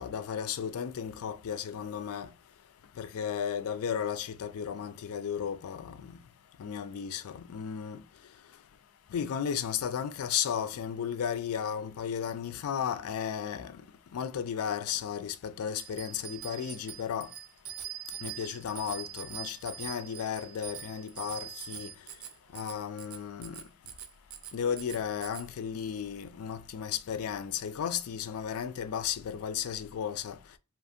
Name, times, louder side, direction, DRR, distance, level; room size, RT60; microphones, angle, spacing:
voice 1, 0.0-2.3 3.0-6.2 6.6-8.0 9.1-13.8 14.1-17.3 18.2-21.9 22.5-23.6 24.5-30.4, left 8 dB, 70° left, 0.3 m, -34 dB
Bicycle bell, 15.8-25.5, right 9 dB, 65° right, 0.5 m, -43 dB
2.5 x 2.5 x 2.5 m
head